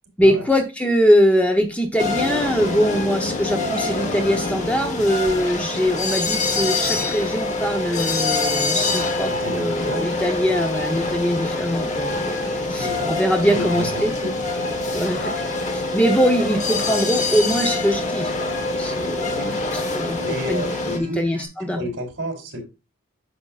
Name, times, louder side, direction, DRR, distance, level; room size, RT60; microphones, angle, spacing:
voice 1, 0.2-14.1 14.9-15.3 15.7-18.3 18.8-20.7 20.9-21.8, equal, 5° left, 3 dB, 0.8 m, -22 dB
sound 1, 2.0-21.0, left 3 dB, 35° left, 1.2 m, -25 dB
sound 2, 8.8-21.5, equal, 10° right, 2.5 m, -43 dB
voice 2, 9.3-10.1 12.8-13.1 13.5-14.3 19.3-19.6 20.1-21.2 21.7-22.6, equal, 60° right, 1 dB, 3.7 m, -31 dB
9.7 x 6.8 x 2.4 m, 0.26 s
head